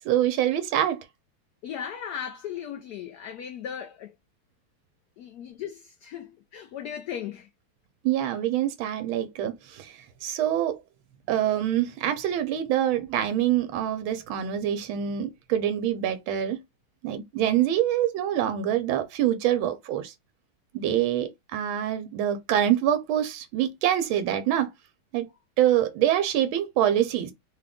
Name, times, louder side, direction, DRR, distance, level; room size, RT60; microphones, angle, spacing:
voice 1, 0.0-1.0 8.0-10.8 11.3-16.6 17.0-20.1 20.7-24.7 25.1-25.3 25.6-27.3, right 11 dB, 90° right, 1.4 m, -25 dB
voice 2, 1.6-4.1 5.2-7.5, left 9 dB, 75° left, 0.9 m, -37 dB
3.7 x 2.3 x 3.5 m
omnidirectional pair, 2.2 m